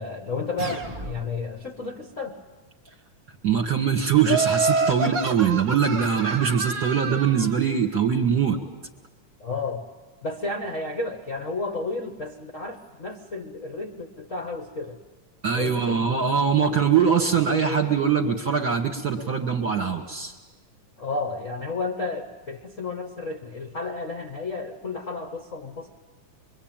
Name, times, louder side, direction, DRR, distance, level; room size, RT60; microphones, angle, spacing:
voice 1, 0.0-2.4 9.4-9.9 10.2-15.0 15.5-16.0 21.0-25.9, left 3 dB, 50° left, 3 dB, 0.8 m, -32 dB
sound 1, 0.6-1.6, right 2 dB, 25° right, 1.2 m, -36 dB
voice 2, 3.4-8.6 15.4-20.3, right 7 dB, 40° right, 3 dB, 1.8 m, -22 dB
Laughter, 4.2-7.5, right 4 dB, 55° right, 1.3 m, -27 dB
25.5 x 22.5 x 9.0 m, 1.2 s
omnidirectional pair, 3.6 m